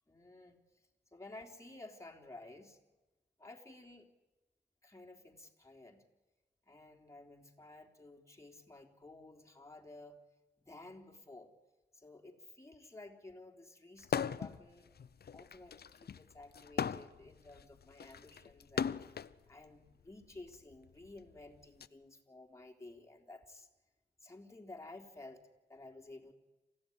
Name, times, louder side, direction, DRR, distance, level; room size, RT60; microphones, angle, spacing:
voice 1, 0.1-0.6 1.1-2.8 3.4-4.1 4.8-6.0 6.7-10.2 10.6-11.5 11.9-14.9 15.3-19.0 19.5-23.7 24.2-25.4 25.7-26.3, left 2 dB, 15° left, 1 dB, 3.6 m, -53 dB
sound 1, 14.0-14.6 15.0-19.3 20.2-21.9, left 7 dB, 65° left, 0.8 m, -38 dB
27.5 x 15.5 x 9.8 m, 1.1 s
cardioid pair, 70°, 18 cm